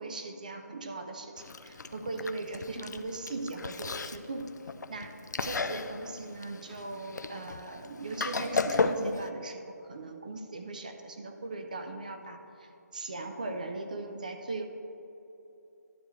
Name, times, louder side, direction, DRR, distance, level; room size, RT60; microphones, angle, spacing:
voice 1, 0.0-4.5 4.9-5.1 5.4-14.6, right 3 dB, 25° right, 5 dB, 0.4 m, -39 dB
Chewing mastication, 1.4-9.3, left 4 dB, 90° left, 0.5 m, -35 dB
11.5 x 6.5 x 3.1 m, 2.9 s
hypercardioid pair, 175°, 9 cm